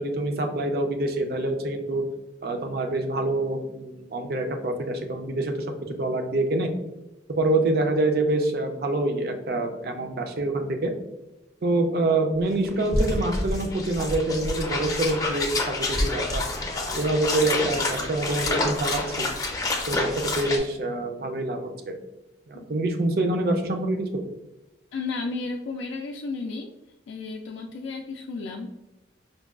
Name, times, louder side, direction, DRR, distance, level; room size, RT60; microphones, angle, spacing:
voice 1, 0.0-2.0 2.4-5.5 5.9-6.7 7.4-10.9 11.6-16.4 17.0-19.3 19.9-21.7 22.5-24.2, right 2 dB, 55° right, 5 dB, 0.4 m, -26 dB
sound 1, 12.4-12.5 12.6-20.6, left 2 dB, 20° left, 0.4 m, -28 dB
voice 2, 24.9-26.7 27.1-28.7, left 3 dB, 90° left, 1 dB, 0.3 m, -33 dB
5.2 x 2.2 x 2.3 m, 1.0 s
head